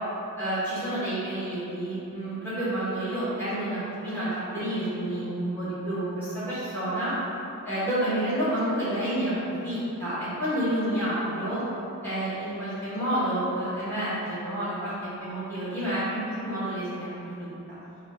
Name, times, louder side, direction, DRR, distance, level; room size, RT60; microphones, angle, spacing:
voice 1, 0.4-7.1 7.6-11.6 12.0-14.9 15.2-17.5, right 1 dB, 10° left, -12 dB, 1.0 m, -29 dB
3.5 x 2.4 x 3.6 m, 2.9 s
head